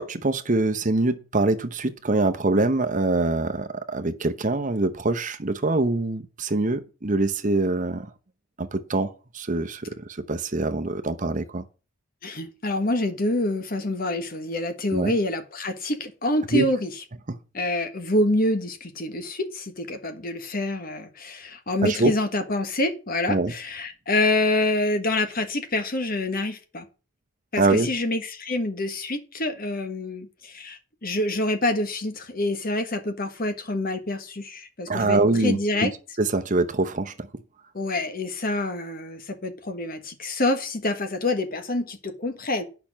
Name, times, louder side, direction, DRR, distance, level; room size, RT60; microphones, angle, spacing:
voice 1, 0.0-8.1 8.6-11.6 14.9-15.1 16.5-16.7 17.3-17.4 21.8-22.1 23.3-23.5 27.6-27.9 34.9-35.9 36.2-37.3, right 2 dB, 35° right, 0.9 m, -24 dB
voice 2, 12.2-16.9 17.5-26.8 27.5-35.9 37.7-42.6, left 2 dB, 40° left, 1.4 m, -26 dB
8.8 x 5.9 x 7.4 m
head